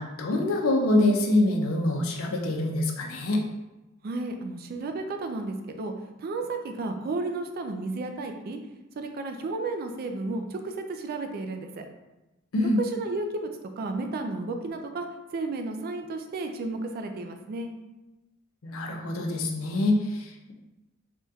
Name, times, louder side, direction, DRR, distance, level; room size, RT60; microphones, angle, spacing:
voice 1, 0.0-3.4 12.5-12.8 18.6-20.5, left 1 dB, 80° left, 2 dB, 0.5 m, -25 dB
voice 2, 4.0-5.9 6.2-8.6 9.0-11.9 12.8-13.5 13.8-15.1 15.3-17.7, right 3 dB, 45° right, 5 dB, 0.3 m, -32 dB
3.5 x 2.2 x 2.7 m, 1.0 s
head